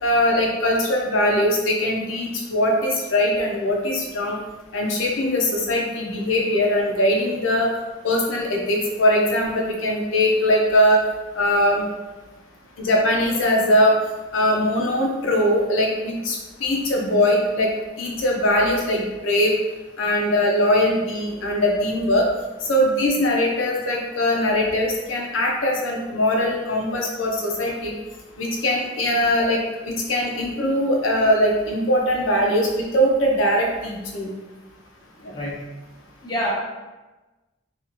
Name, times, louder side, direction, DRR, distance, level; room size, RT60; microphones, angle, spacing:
voice 1, 0.0-4.4 4.7-7.7 8.0-11.0 11.3-11.8 12.8-13.9 14.3-17.7 18.0-19.6 20.0-22.3 22.7-27.9 28.4-34.3 35.2-35.3, left 1 dB, 80° left, -1 dB, 0.6 m, -21 dB
voice 2, 35.3-35.6 36.2-36.5, equal, 20° left, -5 dB, 0.4 m, -26 dB
2.9 x 2.4 x 2.5 m, 1.1 s
head